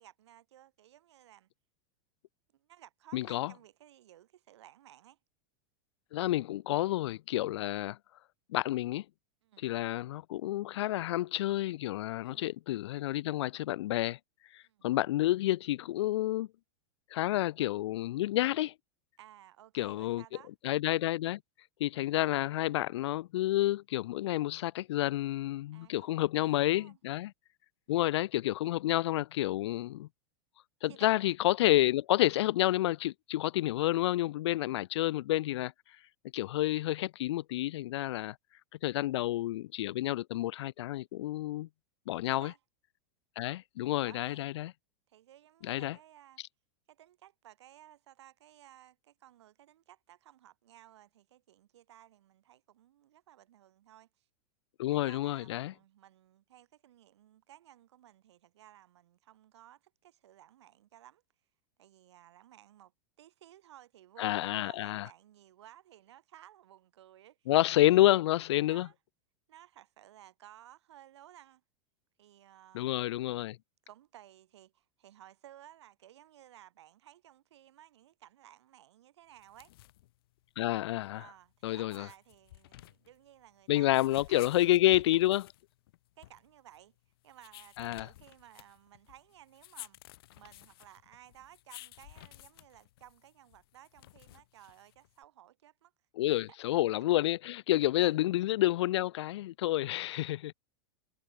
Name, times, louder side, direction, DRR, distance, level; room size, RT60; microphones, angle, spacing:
voice 1, 0.0-1.5 2.5-5.2 9.4-9.7 12.2-12.5 14.6-14.9 19.2-20.5 25.7-27.0 27.9-28.1 30.9-31.1 34.6-34.8 38.1-38.3 42.2-42.6 44.0-44.5 45.1-46.4 46.9-54.3 54.9-61.2 61.8-62.9 63.2-67.9 68.7-68.9 69.5-71.6 72.2-73.0 73.8-79.7 81.2-85.2 86.2-87.0 87.2-90.0 90.3-95.9 96.3-96.6 98.0-98.2, right 12 dB, 80° right, 4.9 m, -57 dB
voice 2, 3.1-3.5 6.1-8.0 8.5-9.0 9.6-14.2 14.5-16.5 17.1-18.7 19.7-20.2 20.6-21.4 21.8-27.3 27.9-30.1 30.8-35.7 36.3-38.4 38.8-41.7 42.1-42.5 43.4-44.7 45.6-46.0 54.8-55.7 64.2-65.1 67.5-68.9 72.7-73.6 80.6-81.2 81.6-82.1 83.7-85.5 87.8-88.1 96.2-100.5, left 15 dB, 85° left, 0.4 m, -29 dB
sound 1, 79.4-95.2, left 16 dB, 60° left, 2.6 m, -54 dB
supercardioid pair, 170°, 14 cm